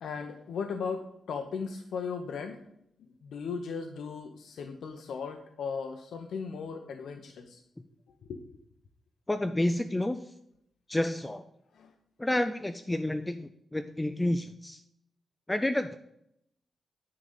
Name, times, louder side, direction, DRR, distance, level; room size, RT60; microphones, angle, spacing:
voice 1, 0.0-2.6 3.2-7.6 8.3-8.4 11.7-11.9, left 5 dB, 80° left, 5 dB, 0.7 m, -37 dB
voice 2, 9.3-10.2 10.9-11.4 12.2-14.8 15.5-15.9, left 1 dB, 10° left, 8 dB, 0.3 m, -29 dB
9.8 x 3.9 x 7.0 m, 0.75 s
wide cardioid pair, 175°, 0 cm